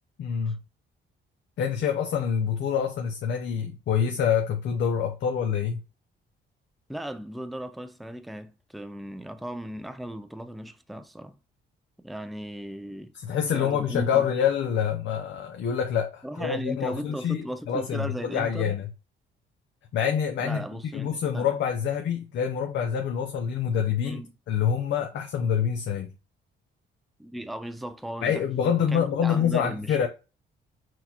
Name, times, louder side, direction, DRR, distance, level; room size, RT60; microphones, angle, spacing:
voice 1, 0.2-0.6 1.6-5.8 13.1-18.8 19.9-20.6 20.9-24.2 24.5-26.1 28.2-30.1, left 8 dB, 65° left, 0.6 m, -26 dB
voice 2, 6.9-11.4 12.0-13.1 13.5-14.3 16.2-18.7 20.4-21.5 24.0-24.3 27.2-30.0, right 1 dB, ahead, 0.3 m, -36 dB
6.0 x 2.3 x 2.9 m
cardioid pair, 90°, 20 cm